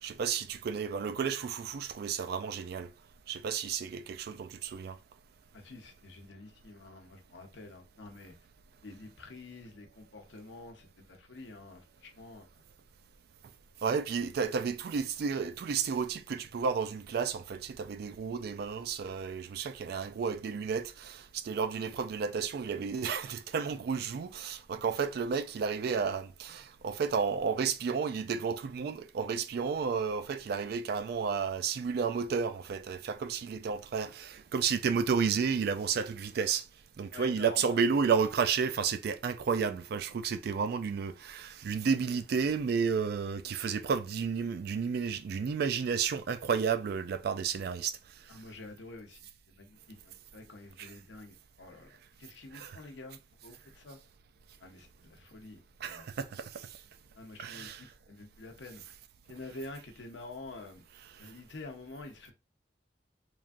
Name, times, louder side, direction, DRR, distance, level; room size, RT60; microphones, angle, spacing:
voice 1, 0.0-2.9 3.3-5.0 13.8-36.6 37.0-48.0 50.8-50.9 52.5-52.8 55.8-56.8 57.4-57.8, right 6 dB, 60° right, 0.3 m, -32 dB
voice 2, 5.5-8.3 8.8-12.6 37.1-37.9 48.3-54.0 54.6-55.6 55.9-56.1 57.2-58.8 59.3-60.8 61.2-62.3, left 2 dB, 80° left, 0.7 m, -48 dB
3.1 x 2.4 x 2.5 m
head